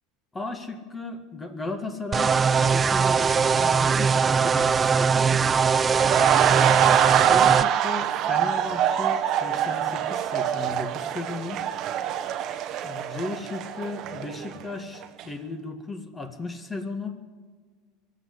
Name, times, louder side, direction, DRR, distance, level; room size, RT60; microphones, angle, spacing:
voice 1, 0.3-5.4 7.2-11.6 12.8-17.2, left 2 dB, 20° left, 7 dB, 2.0 m, -35 dB
sound 1, 2.1-7.6, right 6 dB, 25° right, 0.4 m, -21 dB
sound 2, 5.9-14.7 15.0-15.2, right 10 dB, 50° right, 1.0 m, -24 dB
24.0 x 8.0 x 7.6 m, 1.5 s
supercardioid pair, 105°, 0 cm